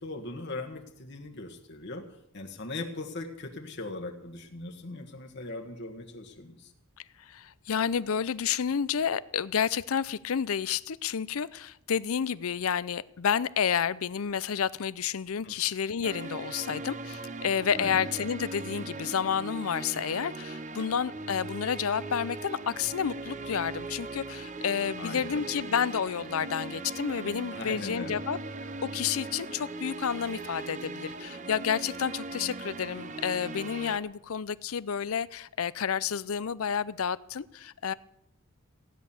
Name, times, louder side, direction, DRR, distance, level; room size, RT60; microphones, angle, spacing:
voice 1, 0.0-6.7 15.4-15.5 17.8-18.0 25.0-25.5 27.5-28.2, left 2 dB, 55° left, 3 dB, 1.4 m, -39 dB
voice 2, 7.2-28.4 28.9-37.9, left 7 dB, 75° left, 19 dB, 0.5 m, -30 dB
sound 1, 16.0-34.0, right 2 dB, 35° right, 0.8 m, -39 dB
16.5 x 10.5 x 7.1 m, 0.77 s
head